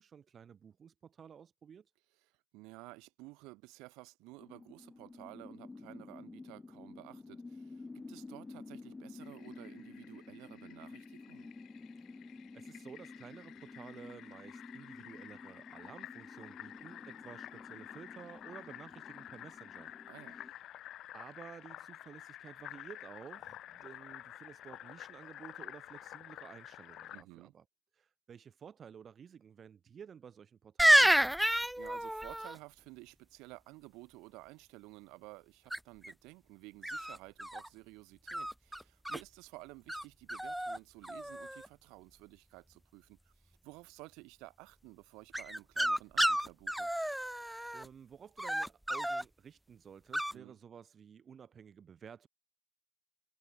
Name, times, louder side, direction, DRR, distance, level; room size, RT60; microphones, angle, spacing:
voice 1, 0.0-1.9 12.5-19.9 20.3-20.4 21.1-27.6 27.9-31.4 47.7-52.3, right 7 dB, 35° right, 2.6 m, -53 dB
voice 2, 2.2-11.5 20.1-20.4 27.1-27.5 31.5-46.9 50.3-50.6, right 24 dB, 70° right, 4.1 m, -53 dB
sound 1, 4.4-20.5, left 3 dB, 15° left, 5.2 m, -51 dB
Fill (with liquid), 9.2-27.2, left 13 dB, 55° left, 2.8 m, -51 dB
sound 2, 30.8-32.6 35.7-36.1 36.8-37.7 38.3-39.2 39.9-40.0 40.3-40.8 41.0-41.7 45.3-47.9 48.4-49.2 50.1-50.3, right 1 dB, 5° right, 0.6 m, -30 dB
supercardioid pair, 90°, 0 cm